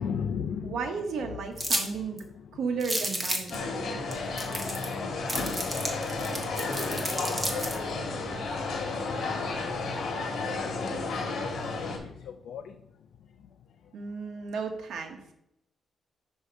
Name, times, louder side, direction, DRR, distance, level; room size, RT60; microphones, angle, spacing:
voice 1, 0.0-2.6 3.3-6.9 7.4-8.2 9.1-12.8, left 7 dB, 90° left, 6 dB, 0.4 m, -41 dB
voice 2, 0.6-2.2 2.6-3.6 13.9-15.3, right 5 dB, 75° right, 4 dB, 0.9 m, -34 dB
sound 1, 1.6-1.9 2.2-2.3 2.8-3.5 4.1-4.2 4.4-4.9 5.3-7.8, right 1 dB, 15° right, 1.0 m, -31 dB
sound 2, 3.5-12.0, left 3 dB, 65° left, 1.5 m, -32 dB
8.2 x 2.8 x 5.9 m, 0.78 s
wide cardioid pair, 175°, 0 cm